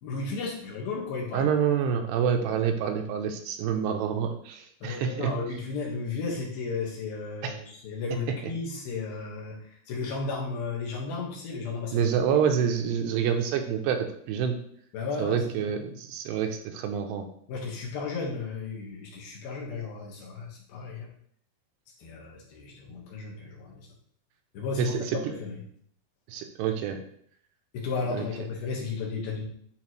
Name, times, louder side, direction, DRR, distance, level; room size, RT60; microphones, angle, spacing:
voice 1, 0.0-1.5 4.8-12.4 14.9-15.7 17.5-21.1 22.0-23.9 24.5-25.6 27.7-29.4, left 4 dB, 65° left, -2 dB, 3.1 m, -34 dB
voice 2, 1.3-5.3 7.4-7.6 11.9-14.6 15.2-17.3 24.8-25.2 26.3-27.0 28.1-28.3, right 7 dB, 85° right, 5 dB, 2.7 m, -27 dB
11.5 x 3.9 x 3.1 m, 0.64 s
omnidirectional pair, 5.0 m